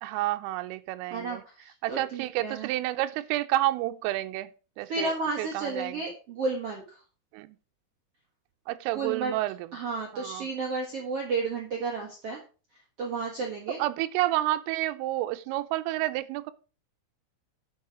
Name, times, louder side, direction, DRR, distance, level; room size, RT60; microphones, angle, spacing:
voice 1, 0.0-1.4 1.8-4.5 4.8-6.0 7.3-7.6 8.7-9.6 10.1-10.5 13.8-16.5, right 16 dB, 90° right, 3.2 m, -30 dB
voice 2, 1.1-2.7 4.9-7.0 8.9-9.3 9.7-12.4 13.0-13.8, right 3 dB, 70° right, 1.4 m, -32 dB
10.5 x 6.3 x 4.9 m
omnidirectional pair, 5.7 m